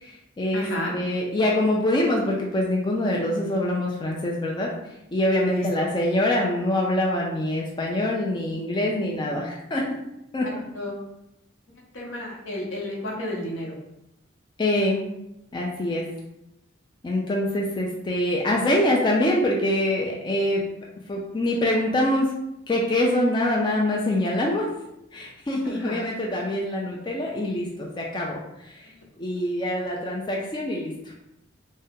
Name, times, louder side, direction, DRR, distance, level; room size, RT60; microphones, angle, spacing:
voice 1, 0.0-0.6 0.9-4.7 5.1-9.9 10.3-10.5 14.6-15.0 15.5-16.0 17.0-20.7 21.1-22.3 22.7-24.7 25.1-28.4 29.2-30.9, left 1 dB, 20° left, -2 dB, 0.3 m, -24 dB
voice 2, 0.5-0.9 5.4-5.7 10.4-10.9 11.9-13.8 25.6-26.0 29.0-29.1 29.9-30.0, left 1 dB, 80° left, -2 dB, 0.8 m, -32 dB
2.7 x 2.1 x 3.5 m, 0.85 s
head